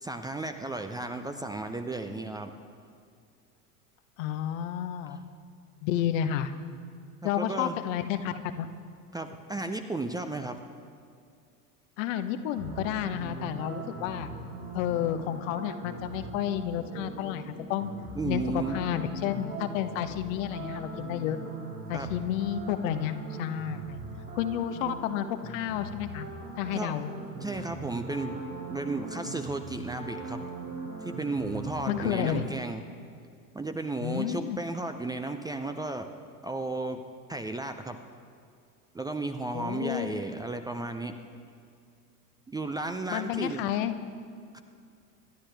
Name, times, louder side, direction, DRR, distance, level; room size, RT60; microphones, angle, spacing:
voice 1, 0.0-2.5 5.1-5.2 7.2-7.8 9.1-10.6 18.2-18.8 21.9-22.1 26.7-27.0 27.4-30.4 31.0-32.8 33.5-36.1 36.4-37.0 37.3-38.0 38.9-41.1 42.5-43.7 44.5-44.6, right 2 dB, 10° right, 6 dB, 0.6 m, -34 dB
voice 2, 4.2-5.2 5.8-6.5 7.2-8.7 12.0-14.3 14.7-17.9 18.2-21.4 21.9-24.0 24.4-26.3 26.6-27.1 31.9-32.4 34.0-34.6 39.5-40.2 43.1-44.0, left 10 dB, 55° left, 9 dB, 1.0 m, -31 dB
sound 1, 12.6-32.4, right 3 dB, 80° right, 3.5 m, -40 dB
27.0 x 11.5 x 3.4 m, 2.3 s
figure-of-eight pair, 75°, 47 cm